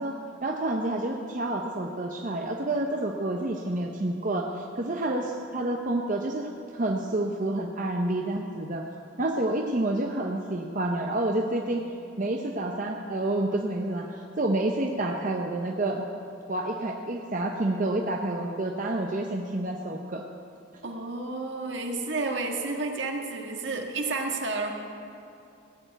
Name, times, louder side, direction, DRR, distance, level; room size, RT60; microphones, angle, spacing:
voice 1, 0.0-8.8 9.2-11.8 12.2-16.0 16.5-20.2, right 1 dB, 40° right, 1 dB, 0.8 m, -29 dB
voice 2, 20.8-24.7, right 3 dB, 70° right, 2 dB, 1.6 m, -31 dB
17.5 x 6.9 x 9.0 m, 2.7 s
head